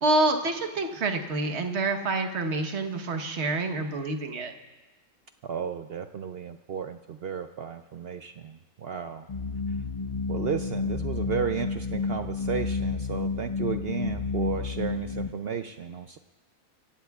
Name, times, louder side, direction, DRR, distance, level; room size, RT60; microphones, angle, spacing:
voice 1, 0.0-4.5, right 2 dB, 50° right, 5 dB, 1.4 m, -27 dB
voice 2, 5.4-9.3 10.3-16.2, right 7 dB, 65° right, 8 dB, 0.6 m, -33 dB
sound 1, 9.3-15.3, left 4 dB, 45° left, 0.5 m, -30 dB
26.0 x 16.0 x 2.4 m, 1.2 s
omnidirectional pair, 1.5 m